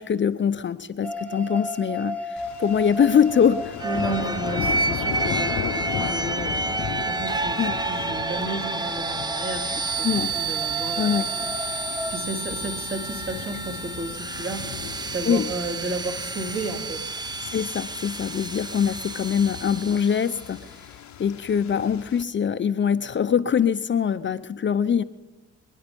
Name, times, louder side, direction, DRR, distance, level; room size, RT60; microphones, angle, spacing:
voice 1, 0.0-3.8 7.6-7.8 10.0-10.3 11.0-11.3 15.3-15.5 17.5-20.9 21.2-25.0, left 7 dB, 40° left, 11 dB, 0.7 m, -23 dB
sound 1, 1.0-12.2, right 1 dB, 5° left, 1.2 m, -35 dB
sound 2, 2.4-22.2, left 10 dB, 65° left, 0.9 m, -37 dB
sound 3, 3.8-20.5, right 3 dB, 15° right, 0.7 m, -30 dB
voice 2, 3.8-11.1 11.3-11.8 12.1-17.1, right 2 dB, 45° right, 3 dB, 3.0 m, -33 dB
26.0 x 10.0 x 5.3 m, 1.1 s
cardioid pair, 90°, 30 cm